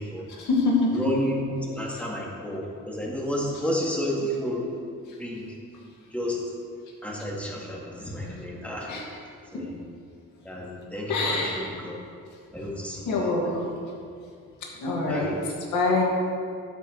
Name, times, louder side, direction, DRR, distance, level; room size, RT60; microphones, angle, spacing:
voice 1, 0.4-1.0 8.9-9.0 11.1-11.7 13.1-13.7 14.8-15.3 15.7-16.0, left 3 dB, 80° left, -2 dB, 2.3 m, -24 dB
voice 2, 0.9-4.6 5.1-5.6 6.1-6.4 7.0-8.9 9.5-9.8 10.4-11.9 12.5-13.4 15.1-15.4, equal, 5° left, -4 dB, 2.4 m, -31 dB
12.0 x 8.5 x 3.3 m, 2.3 s
cardioid pair, 90°, 30 cm